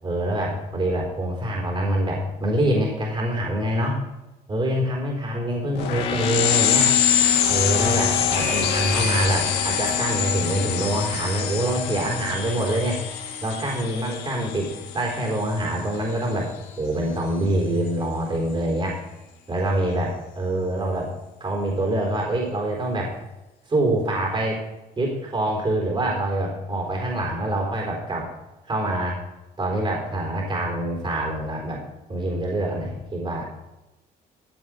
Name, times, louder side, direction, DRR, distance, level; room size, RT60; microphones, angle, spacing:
voice 1, 0.0-4.0 4.5-6.9 7.5-13.0 13.4-19.0 19.5-21.1 21.4-23.2 23.7-24.6 25.0-28.3 28.6-29.2 29.6-31.8 32.1-33.5, right 1 dB, 30° right, -1 dB, 4.0 m, -25 dB
sound 1, 5.8-15.9, left 8 dB, 90° left, 2.0 m, -24 dB
14.5 x 7.7 x 5.0 m, 1.0 s
cardioid pair, 110°, 17 cm